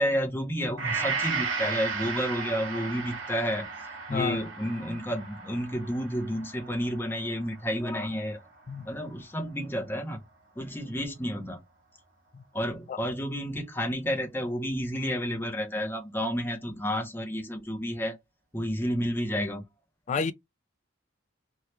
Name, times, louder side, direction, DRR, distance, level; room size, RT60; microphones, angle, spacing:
voice 1, 0.0-3.7 4.1-8.4 8.9-10.2 10.6-11.6 12.5-18.2 18.5-19.6, equal, 10° left, 0.7 m, -30 dB
Gong, 0.8-9.1 9.5-9.6, right 4 dB, 80° right, 1.3 m, -35 dB
voice 2, 4.1-4.4 8.7-8.9 12.3-12.4 12.9-13.0 20.1-20.3, left 5 dB, 40° left, 0.3 m, -29 dB
2.8 x 2.3 x 3.2 m
head